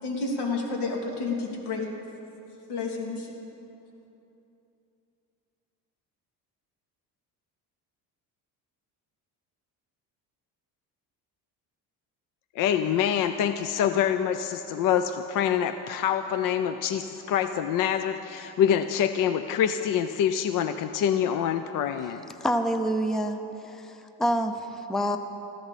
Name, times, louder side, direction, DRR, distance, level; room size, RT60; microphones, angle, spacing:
voice 1, 0.0-1.9 2.7-3.3, left 3 dB, 85° left, 0 dB, 2.7 m, -30 dB
voice 2, 12.6-22.2, left 9 dB, 55° left, 9 dB, 0.6 m, -26 dB
voice 3, 22.4-23.4 23.6-25.2, equal, ahead, 7 dB, 0.5 m, -27 dB
20.0 x 15.0 x 4.1 m, 2.8 s
cardioid pair, 140°, 40 cm